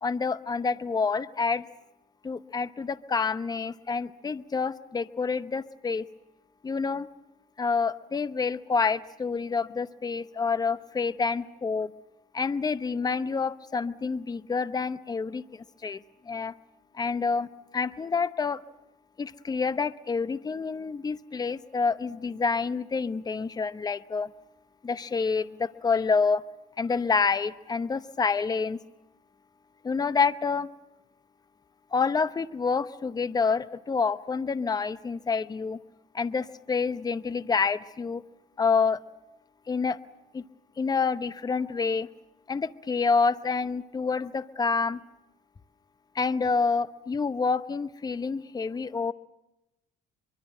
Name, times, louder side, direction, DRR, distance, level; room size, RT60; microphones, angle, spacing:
voice 1, 0.0-1.7 2.2-6.0 6.6-7.1 7.6-11.9 12.3-16.5 16.9-17.5 17.7-18.6 19.2-24.3 24.8-26.4 26.8-28.8 29.8-30.7 31.9-35.8 36.1-38.2 38.6-39.0 39.7-40.0 40.3-40.4 40.8-42.1 42.5-45.0 46.1-49.1, left 5 dB, 25° left, 14 dB, 0.9 m, -28 dB
24.5 x 23.5 x 7.8 m, 0.91 s
cardioid pair, 110°, 17 cm